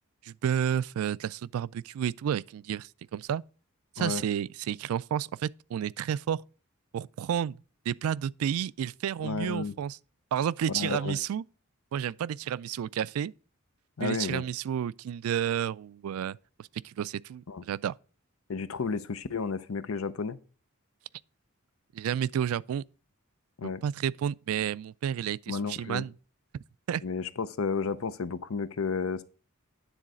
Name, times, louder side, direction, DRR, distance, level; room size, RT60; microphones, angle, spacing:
voice 1, 0.2-3.4 4.0-6.4 6.9-7.5 7.9-10.0 10.3-11.4 11.9-13.3 14.0-18.0 21.9-22.8 23.8-26.1 26.9-27.0, right 9 dB, 80° right, 0.3 m, -31 dB
voice 2, 9.2-9.7 10.7-11.2 14.0-14.4 17.5-17.6 18.5-20.4 23.6-23.8 25.5-26.1 27.0-29.2, left 4 dB, 70° left, 0.6 m, -32 dB
9.9 x 3.9 x 6.2 m
head